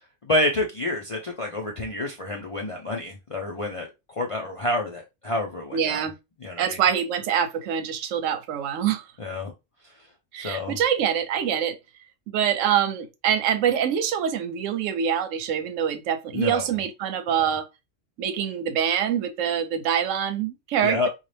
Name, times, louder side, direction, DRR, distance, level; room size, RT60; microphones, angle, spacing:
voice 1, 0.2-6.0 6.4-6.8 9.2-9.5 9.8-9.9 10.4-10.8 16.3-16.7 20.8-21.1, left 2 dB, 50° left, 0.4 m, -28 dB
voice 2, 5.7-6.1 6.6-9.1 10.3-11.8 12.3-17.7 18.2-21.1, right 8 dB, 85° right, 1.0 m, -25 dB
4.0 x 2.3 x 3.2 m
omnidirectional pair, 1.3 m